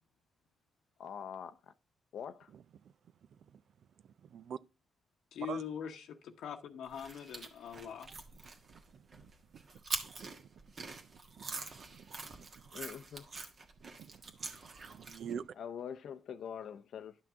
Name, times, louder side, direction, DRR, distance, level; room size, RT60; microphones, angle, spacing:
voice 1, 1.0-1.7 2.1-2.5 12.7-13.3 15.6-17.2, left 8 dB, 70° left, 0.6 m, -44 dB
voice 2, 4.2-4.6 5.5-5.6 8.7-9.6 10.0-10.3 10.8-12.5 14.0-14.1 14.4-15.5, right 8 dB, 65° right, 0.5 m, -47 dB
voice 3, 5.3-8.1, left 7 dB, 85° left, 1.0 m, -42 dB
sound 1, 6.9-15.4, right 3 dB, 40° right, 1.4 m, -45 dB
11.0 x 6.0 x 3.6 m
cardioid pair, 130°, 0 cm